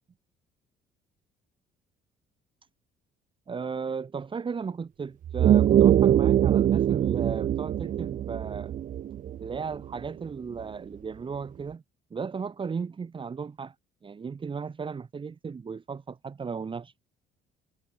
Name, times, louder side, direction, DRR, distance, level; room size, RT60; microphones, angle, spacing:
voice 1, 3.5-8.7 9.4-11.8 12.1-13.7 14.0-16.9, right 5 dB, 30° right, 2.7 m, -35 dB
sound 1, 5.2-10.1, right 10 dB, 50° right, 1.0 m, -23 dB
cardioid pair, 110°, 17 cm